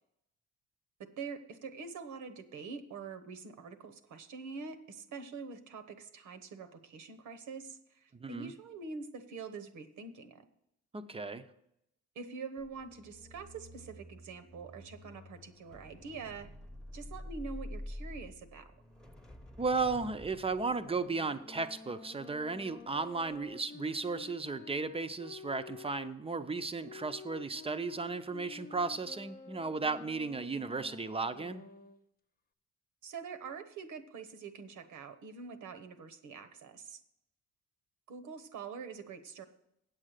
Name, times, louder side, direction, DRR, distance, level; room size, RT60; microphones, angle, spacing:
voice 1, 1.0-10.4 12.1-16.5 16.9-18.7 33.0-37.0 38.1-39.4, right 5 dB, 75° right, 10 dB, 1.1 m, -45 dB
voice 2, 8.1-8.5 10.9-11.5 19.6-31.6, right 4 dB, 20° right, 10 dB, 0.6 m, -35 dB
sound 1, 12.6-22.9 23.2-23.5, equal, ahead, 1.0 m, -49 dB
sound 2, 20.7-26.2 26.8-32.0, left 5 dB, 30° left, 0.7 m, -51 dB
8.5 x 7.5 x 6.6 m, 0.80 s
cardioid pair, 90°, 30 cm